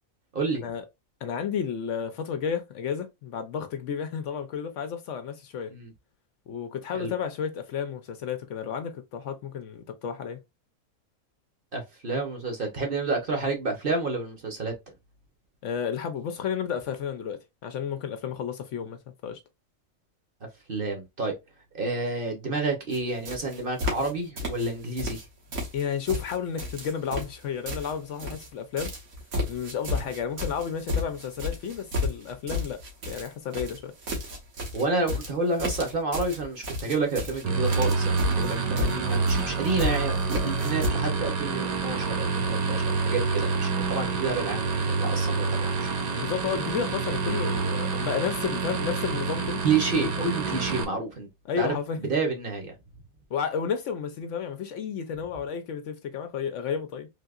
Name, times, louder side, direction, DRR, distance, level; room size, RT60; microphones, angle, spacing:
voice 1, 1.2-5.7 6.5-10.4 15.6-19.4 25.7-28.9 29.5-32.8 33.1-33.9 46.2-49.6 49.9-50.3 51.5-52.0 53.3-57.1, left 7 dB, 70° left, 0.8 m, -32 dB
voice 2, 11.7-14.7 20.7-21.3 21.7-25.3 34.7-45.9 49.6-51.3 51.6-51.7 52.1-52.7, right 3 dB, 45° right, 0.9 m, -29 dB
sound 1, 22.9-23.0 23.3-24.1 24.4-25.3 25.5-28.5 28.8-40.9, left 2 dB, 80° right, 1.6 m, -33 dB
sound 2, 37.4-50.8, right 4 dB, 65° right, 0.4 m, -27 dB
3.4 x 2.7 x 2.4 m
omnidirectional pair, 1.4 m